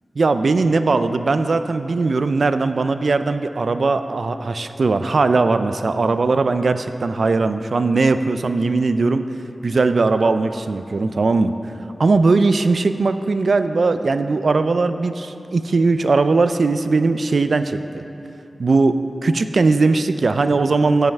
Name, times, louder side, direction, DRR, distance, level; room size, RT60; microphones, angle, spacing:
voice 1, 0.2-9.2 9.6-11.5 12.0-18.0 18.6-21.1, right 3 dB, 70° right, 10 dB, 0.3 m, -19 dB
14.5 x 5.4 x 3.5 m, 2.8 s
wide cardioid pair, 95°, 0 cm